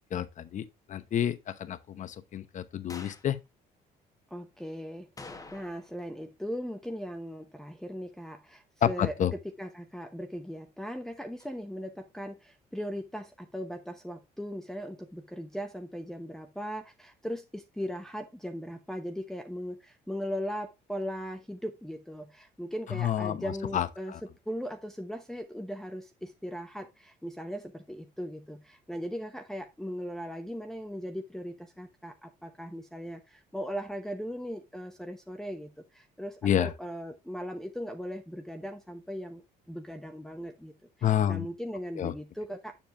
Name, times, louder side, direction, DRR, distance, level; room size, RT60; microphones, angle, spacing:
voice 1, 0.1-3.4 8.8-9.3 22.9-24.2 36.4-36.7 41.0-41.5 42.0-42.1, left 10 dB, 45° left, 0.8 m, -29 dB
sound 1, 2.9-3.3 5.2-6.0 6.3-6.4 11.4-11.5, left 3 dB, 20° left, 1.2 m, -46 dB
voice 2, 4.3-5.1 5.5-40.7 41.0-42.7, equal, ahead, 0.9 m, -38 dB
7.2 x 7.2 x 2.5 m
cardioid pair, 110°, 17 cm